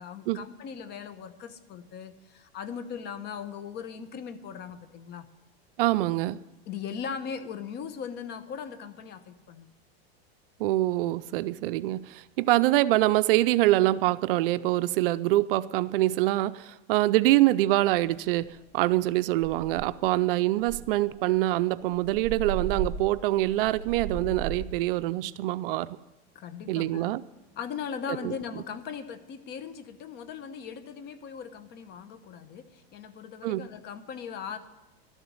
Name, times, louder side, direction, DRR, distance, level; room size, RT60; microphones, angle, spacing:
voice 1, 0.0-5.3 6.7-9.7 17.3-17.4 26.3-27.1 27.6-34.6, left 7 dB, 35° left, 11 dB, 1.0 m, -39 dB
voice 2, 5.8-6.4 10.6-18.5 18.7-25.9 26.7-27.2 28.2-28.3 33.4-33.6, right 16 dB, 60° right, 16 dB, 0.5 m, -25 dB
sound 1, 18.4-18.7 19.0-19.1 19.4-20.1 20.6-24.8, right 7 dB, 10° right, 3.1 m, -36 dB
12.5 x 7.2 x 9.6 m, 1.1 s
supercardioid pair, 140°, 31 cm